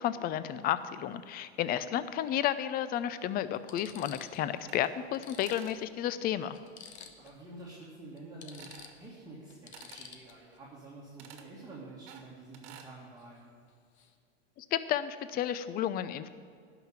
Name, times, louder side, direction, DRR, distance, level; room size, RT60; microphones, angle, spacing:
voice 1, 0.0-6.6 14.6-16.3, left 11 dB, 30° left, 14 dB, 0.5 m, -32 dB
sound 1, 0.6-0.8 2.3-2.4 3.0-3.1 3.5-4.5 4.8-4.9 5.1-7.4 7.7-7.9 8.2-10.6 13.2-13.4 13.7-14.1, left 7 dB, 85° left, 1.2 m, -52 dB
sound 2, 4.5-5.2 5.5-5.8 8.5-9.0 9.7-10.1 11.2-11.5 12.1-12.9, right 8 dB, 50° right, 1.5 m, -52 dB
voice 2, 7.2-13.5, right 2 dB, 10° right, -7 dB, 2.2 m, -49 dB
12.0 x 5.9 x 8.7 m, 2.2 s
hypercardioid pair, 120°, 32 cm